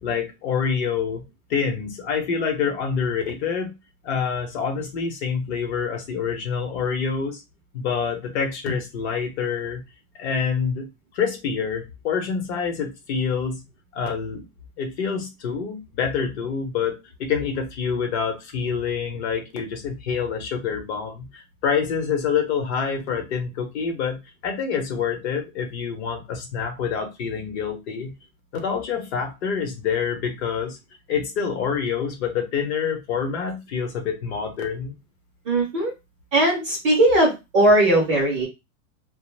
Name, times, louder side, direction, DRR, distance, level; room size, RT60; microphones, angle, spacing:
voice 1, 0.0-1.2 1.5-3.7 4.0-7.4 7.7-9.8 10.1-10.9 11.1-13.6 13.9-14.5 14.8-28.1 28.6-30.8 31.1-34.9, left 6 dB, 50° left, 0.8 m, -26 dB
voice 2, 35.5-35.9 36.3-38.5, right 1 dB, 25° right, 0.4 m, -19 dB
2.4 x 2.1 x 3.1 m
supercardioid pair, 175°, 43 cm